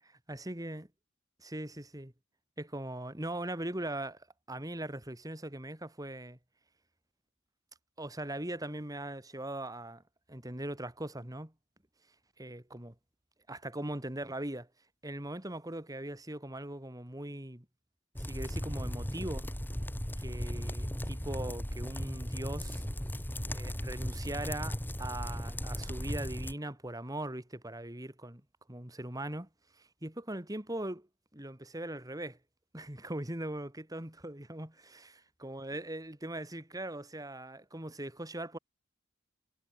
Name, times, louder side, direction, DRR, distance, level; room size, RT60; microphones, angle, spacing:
voice 1, 0.0-0.9 1.4-2.1 2.6-6.4 8.0-10.0 10.3-11.5 12.4-12.9 13.5-14.7 15.0-17.7 18.2-19.5 20.2-22.8 23.5-28.4 28.7-29.5 29.8-31.1 31.3-32.4 32.7-38.6, right 1 dB, 20° right, 2.5 m, -40 dB
sound 1, 18.2-26.5, equal, 10° left, 2.5 m, -37 dB
head